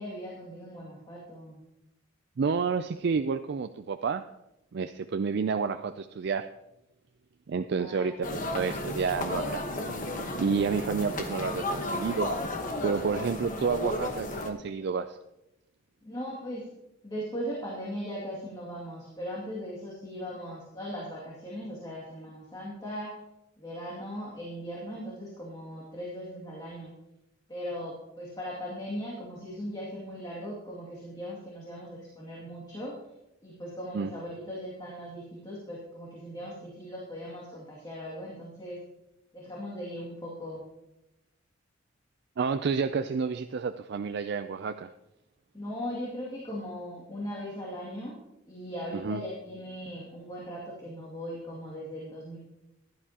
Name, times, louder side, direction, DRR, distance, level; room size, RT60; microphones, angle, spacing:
voice 1, 0.0-1.6 7.8-8.5 16.0-16.7 17.0-23.1 23.6-26.9 27.5-33.0 33.4-38.8 39.3-40.6 45.5-48.2 48.5-52.4, equal, 20° left, -5 dB, 2.3 m, -39 dB
voice 2, 2.4-4.2 4.7-6.5 7.5-9.6 10.4-12.3 12.8-15.2 33.9-34.1 42.4-44.9 48.9-49.2, right 5 dB, 60° right, 9 dB, 0.4 m, -30 dB
sound 1, 8.2-14.5, left 1 dB, 40° left, 1.2 m, -33 dB
15.5 x 11.5 x 2.9 m, 0.90 s
head